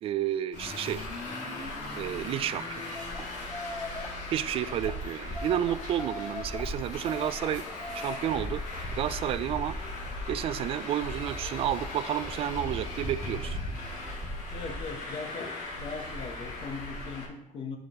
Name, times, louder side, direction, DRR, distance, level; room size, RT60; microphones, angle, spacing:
voice 1, 0.0-1.1 1.9-3.3 4.3-7.6 7.9-8.6 8.9-9.8 10.3-13.6, right 11 dB, 50° right, 14 dB, 0.3 m, -31 dB
Traffic noise roadway noise, 0.5-17.3, left 1 dB, 70° left, 1.9 m, -37 dB
sound 1, 2.9-3.2 3.5-4.1 4.7-4.9 5.3-6.6 7.0-8.4, left 2 dB, 10° left, 0.5 m, -40 dB
voice 2, 14.5-15.5 15.8-17.8, left 4 dB, 45° left, 5 dB, 1.0 m, -39 dB
9.4 x 5.1 x 3.0 m, 0.86 s
cardioid pair, 150°, 13 cm